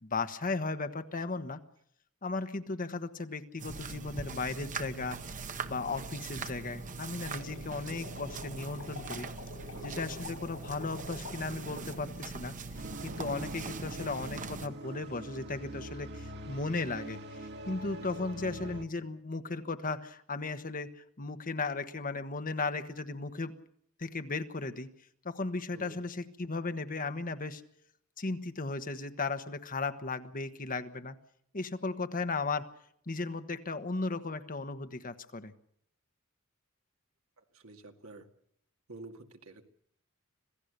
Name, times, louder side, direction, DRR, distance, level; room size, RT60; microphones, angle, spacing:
voice 1, 0.0-1.6 2.2-5.2 5.7-9.3 9.8-23.5 24.0-24.9 25.2-27.6 28.2-31.1 31.5-32.7 33.1-35.5, left 3 dB, 40° left, 9 dB, 1.3 m, -36 dB
sound 1, 3.6-14.7, right 4 dB, 40° right, 1.2 m, -42 dB
sound 2, 7.2-12.0, left 3 dB, 70° left, 4.5 m, -47 dB
voice 2, 9.7-10.1 25.7-26.0 37.4-38.3 38.9-39.6, right 2 dB, 75° right, 5 dB, 2.3 m, -50 dB
sound 3, 12.7-18.8, right 1 dB, 55° right, 2.2 m, -44 dB
26.0 x 16.5 x 6.8 m, 0.69 s
head